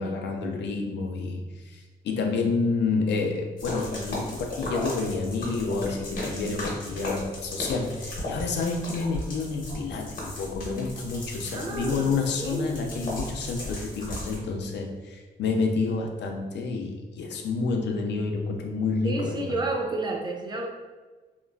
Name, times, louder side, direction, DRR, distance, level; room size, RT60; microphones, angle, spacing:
voice 1, 0.0-19.6, left 4 dB, 80° left, 3 dB, 0.4 m, -29 dB
sound 1, 3.6-14.4, left 1 dB, 50° left, 0.8 m, -36 dB
voice 2, 11.5-12.8 19.0-20.7, right 2 dB, 25° right, 0 dB, 0.4 m, -31 dB
2.9 x 2.3 x 2.3 m, 1.3 s
wide cardioid pair, 140°, 18 cm